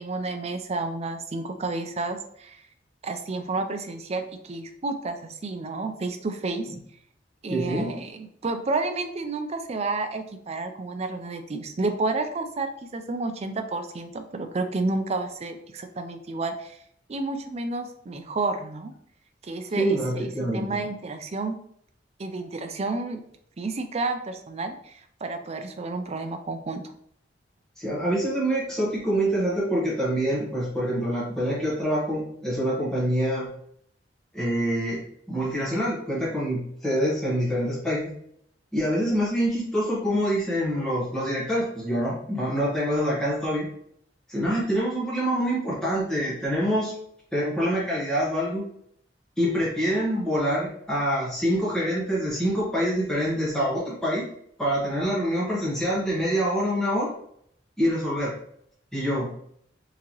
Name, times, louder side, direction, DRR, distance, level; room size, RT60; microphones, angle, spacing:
voice 1, 0.0-2.6 3.0-6.8 7.4-16.8 17.1-18.9 19.4-20.2 20.5-21.6 22.2-23.2 23.6-26.8, right 3 dB, 35° right, 7 dB, 0.4 m, -30 dB
voice 2, 7.5-7.9 19.8-20.7 27.8-33.5 34.3-35.0 35.3-38.1 38.7-43.7 44.3-46.9 47.3-48.6 49.4-54.3 54.6-57.1 57.8-58.3 58.9-59.3, equal, 5° left, -7 dB, 1.0 m, -25 dB
3.8 x 2.8 x 3.0 m, 0.67 s
head